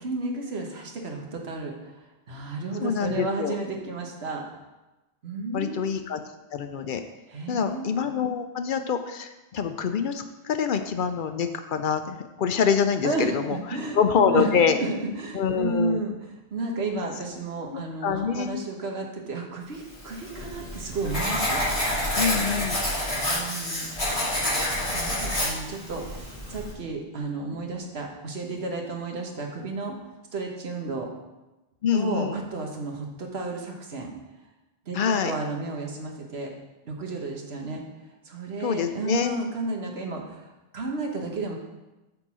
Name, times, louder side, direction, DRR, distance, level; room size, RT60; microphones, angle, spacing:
voice 1, 0.0-4.4 5.2-5.8 7.3-7.9 13.0-16.1 16.5-21.6 22.1-22.5 23.3-30.0 30.3-31.1 31.9-34.1 34.9-35.0 35.2-36.5 36.8-37.8 38.2-41.5, right 3 dB, 80° right, 1 dB, 1.4 m, -32 dB
voice 2, 2.8-3.6 5.5-7.0 7.5-13.6 13.9-14.8 15.3-16.0 17.7-18.6 22.2-22.9 31.8-32.4 34.9-35.3 38.6-39.4, left 7 dB, 60° left, 8 dB, 0.6 m, -26 dB
Writing, 20.0-26.7, left 1 dB, 35° left, 2.6 m, -28 dB
8.2 x 3.9 x 6.1 m, 1.0 s
omnidirectional pair, 1.0 m